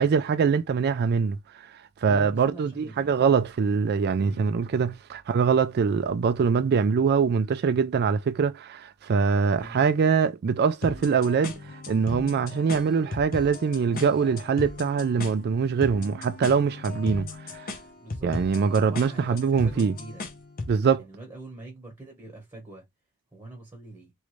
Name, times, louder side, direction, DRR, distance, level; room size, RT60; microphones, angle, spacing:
voice 1, 0.0-1.4 2.0-11.6 11.9-17.6 18.2-19.9 20.7-21.0, right 6 dB, 45° right, 0.3 m, -23 dB
voice 2, 2.0-3.1 4.2-4.5 9.6-9.9 18.0-20.3 21.0-22.8 23.3-24.1, right 2 dB, 15° right, 1.3 m, -44 dB
sound 1, 10.8-20.8, left 3 dB, 40° left, 0.8 m, -37 dB
3.1 x 2.5 x 3.1 m
head